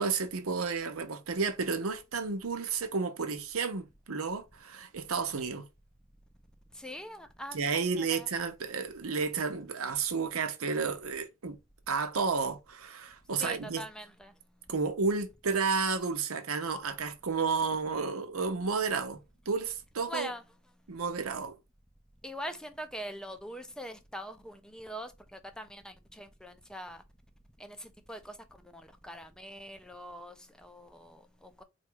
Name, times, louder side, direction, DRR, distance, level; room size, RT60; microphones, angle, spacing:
voice 1, 0.0-5.6 7.5-11.6 11.9-13.8 14.7-20.3 20.9-21.5, right 5 dB, 75° right, 0.7 m, -32 dB
voice 2, 6.7-8.3 13.4-14.3 20.1-20.4 22.2-27.0 27.6-28.4 28.6-31.6, equal, 5° left, 0.5 m, -43 dB
4.3 x 2.4 x 4.5 m
head